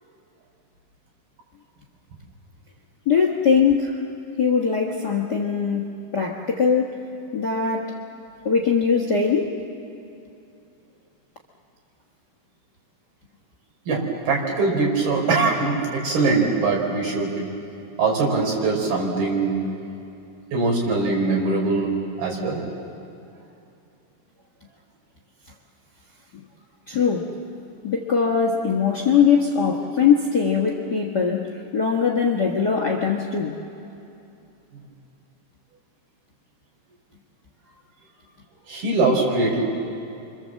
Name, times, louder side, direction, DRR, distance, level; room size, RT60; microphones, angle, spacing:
voice 1, 3.1-4.0 4.4-6.9 7.3-7.9 8.4-9.6 26.9-27.3 27.8-31.5 31.7-33.6, left 6 dB, 50° left, 1 dB, 1.2 m, -21 dB
voice 2, 13.9-17.3 18.0-19.6 20.5-21.9 22.2-22.6 38.7-39.6, right 3 dB, 85° right, -1 dB, 6.2 m, -22 dB
29.5 x 25.0 x 7.6 m, 2.7 s
omnidirectional pair, 4.2 m